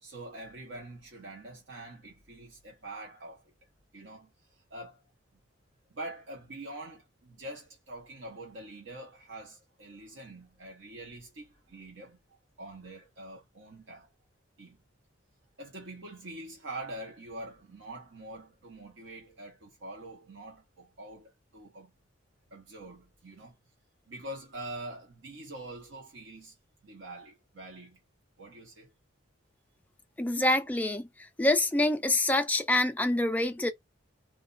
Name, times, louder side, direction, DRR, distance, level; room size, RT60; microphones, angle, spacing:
voice 1, 0.0-3.4 3.9-4.3 4.7-5.0 5.9-12.2 12.6-14.1 14.6-14.8 15.6-21.9 22.5-23.5 24.1-26.5 26.8-28.0 28.4-28.9, right 1 dB, 70° right, 0.9 m, -44 dB
voice 2, 30.2-33.7, left 1 dB, 10° left, 0.3 m, -26 dB
2.3 x 2.2 x 3.8 m
head